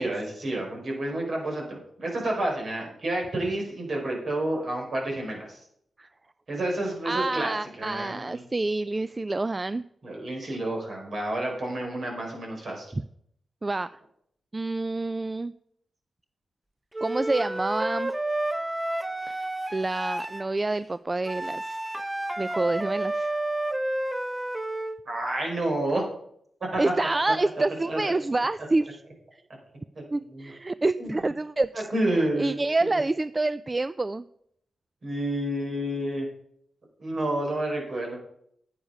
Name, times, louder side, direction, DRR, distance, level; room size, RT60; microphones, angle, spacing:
voice 1, 0.0-5.6 6.5-8.4 10.0-12.9 25.1-26.0 26.7-26.9 27.3-27.4 27.9-28.0 30.0-30.1 30.3-30.5 31.0-31.2 31.9-33.0 35.0-36.3 37.0-38.2, right 1 dB, 60° right, 0 dB, 4.3 m, -29 dB
voice 2, 7.0-9.9 12.9-13.0 13.6-13.9 14.5-15.5 17.0-18.1 19.3-19.5 19.7-22.1 22.4-23.4 26.8-29.0 29.3-29.4 30.1-34.3, right 2 dB, 30° right, 15 dB, 0.4 m, -28 dB
Wind instrument woodwind instrument, 16.9-20.5 21.3-25.0, right 1 dB, 15° right, 0.8 m, -30 dB
9.5 x 8.6 x 5.5 m, 0.70 s
supercardioid pair, 40°, 0 cm